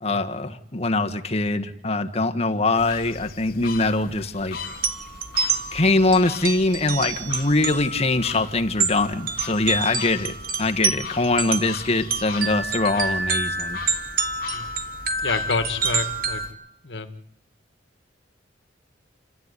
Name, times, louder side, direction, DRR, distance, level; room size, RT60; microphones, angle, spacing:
voice 1, 0.0-4.6 5.7-10.3 10.6-13.8, left 2 dB, 35° left, 6 dB, 1.5 m, -23 dB
sound 1, 2.8-16.5, left 4 dB, 55° left, 2.7 m, -39 dB
sound 2, 4.7-16.5, right 4 dB, 50° right, 2.3 m, -28 dB
voice 2, 15.2-16.4 16.8-17.2, left 4 dB, 70° left, 8 dB, 1.9 m, -28 dB
30.0 x 13.5 x 9.8 m, 0.76 s
head